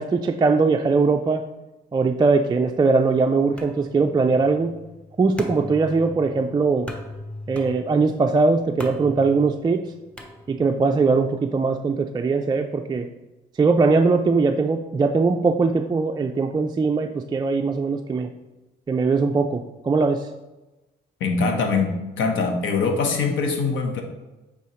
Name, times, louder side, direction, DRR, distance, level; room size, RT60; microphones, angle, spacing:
voice 1, 0.0-1.4 1.9-4.7 5.2-6.9 7.5-9.8 10.5-13.1 13.6-18.3 18.9-20.3, right 4 dB, 20° right, 4 dB, 0.3 m, -21 dB
sound 1, 3.6-10.9, left 1 dB, 5° left, 0.9 m, -39 dB
voice 2, 21.2-21.9 22.2-24.0, left 4 dB, 75° left, 4 dB, 1.1 m, -22 dB
8.4 x 4.0 x 3.1 m, 1.1 s
cardioid pair, 90°, 20 cm